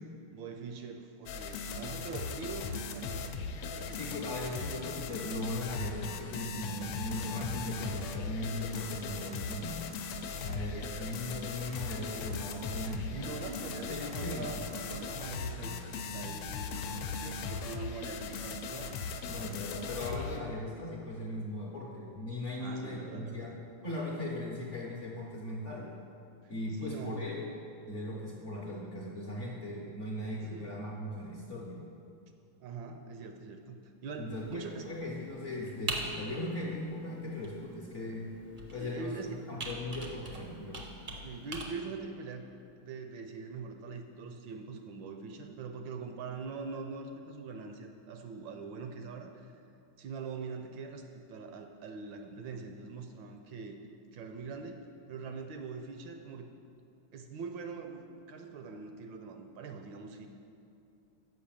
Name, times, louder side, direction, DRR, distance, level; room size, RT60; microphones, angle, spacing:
voice 1, 0.3-4.3 13.1-16.9 17.1-19.0 22.6-23.6 26.8-27.2 30.5-30.9 32.6-34.9 38.8-39.5 41.2-42.4 42.8-49.6 50.0-53.8 54.1-56.5 57.1-60.3, right 4 dB, 75° right, 5 dB, 1.2 m, -43 dB
sound 1, 1.3-20.4, left 5 dB, 80° left, 1.3 m, -38 dB
voice 2, 3.9-9.8 10.4-13.2 13.9-14.6 19.2-25.9 26.5-27.5 27.9-31.8 34.2-38.3 38.7-39.1 39.5-40.9, left 1 dB, 55° left, -3 dB, 0.8 m, -38 dB
Computer keyboard, 34.3-41.6, right 2 dB, 55° right, 0.5 m, -43 dB
6.6 x 5.5 x 7.2 m, 2.6 s
omnidirectional pair, 2.2 m